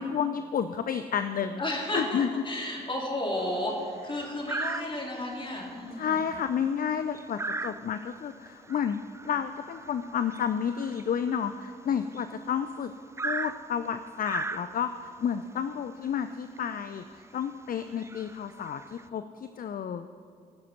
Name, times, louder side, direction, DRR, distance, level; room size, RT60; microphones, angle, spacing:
voice 1, 0.0-1.6 1.9-2.3 5.9-12.9 13.2-17.0 17.3-20.1, left 7 dB, 50° left, 10 dB, 0.5 m, -31 dB
voice 2, 1.6-6.2, left 1 dB, 25° left, -2 dB, 3.6 m, -32 dB
sound 1, 3.4-3.7 4.5-5.3 5.7-5.9 6.2-12.4 13.2-15.1 16.0-16.2 16.6-16.7 17.2-17.4 17.9-19.0, right 3 dB, 15° right, 0.4 m, -38 dB
15.0 x 6.6 x 5.9 m, 2.1 s
supercardioid pair, 45°, 18 cm